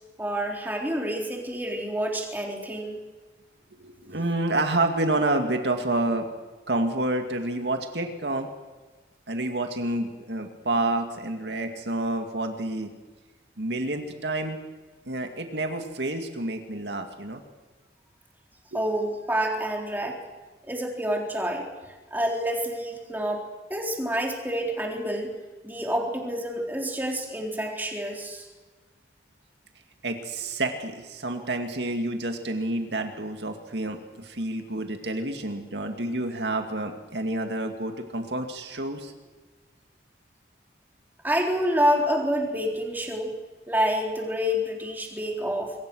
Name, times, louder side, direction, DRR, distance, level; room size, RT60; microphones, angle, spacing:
voice 1, 0.2-3.0 18.7-20.2 20.6-21.7 22.1-25.3 25.6-28.5 41.2-43.3 43.7-45.7, equal, 10° right, 0 dB, 3.7 m, -28 dB
voice 2, 3.7-6.3 6.7-8.5 9.3-12.9 13.6-14.6 15.1-17.4 18.7-18.8 30.0-39.1, right 2 dB, 75° right, 5 dB, 2.2 m, -29 dB
25.5 x 23.0 x 6.4 m, 1.3 s
head